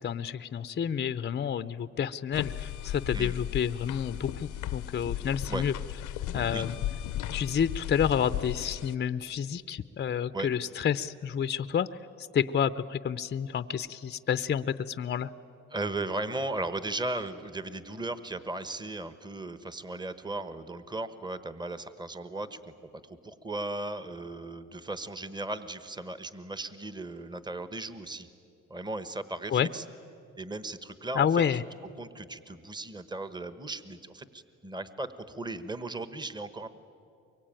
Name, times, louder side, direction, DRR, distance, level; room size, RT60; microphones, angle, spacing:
voice 1, 0.0-5.7 6.3-6.8 7.3-11.9 12.3-15.3 29.5-29.7 31.1-31.6, left 8 dB, 35° left, 13 dB, 0.6 m, -29 dB
sound 1, 2.3-8.9, left 12 dB, 85° left, 0.8 m, -35 dB
voice 2, 15.7-22.7 23.0-28.3 28.7-29.8 30.4-31.6 32.0-36.7, right 2 dB, 15° right, 12 dB, 1.2 m, -36 dB
24.0 x 23.0 x 9.0 m, 2.5 s
cardioid pair, 90°, 30 cm